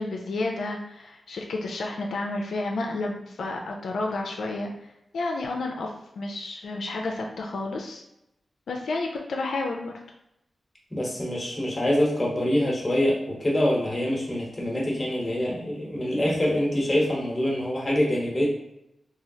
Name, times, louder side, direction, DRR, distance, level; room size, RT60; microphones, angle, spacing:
voice 1, 0.0-4.7 5.1-8.0 8.7-9.9, left 2 dB, 90° left, 1 dB, 0.4 m, -31 dB
voice 2, 10.9-18.5, left 1 dB, 20° left, -3 dB, 0.9 m, -25 dB
3.1 x 2.3 x 2.7 m, 0.86 s
wide cardioid pair, 95°, 0 cm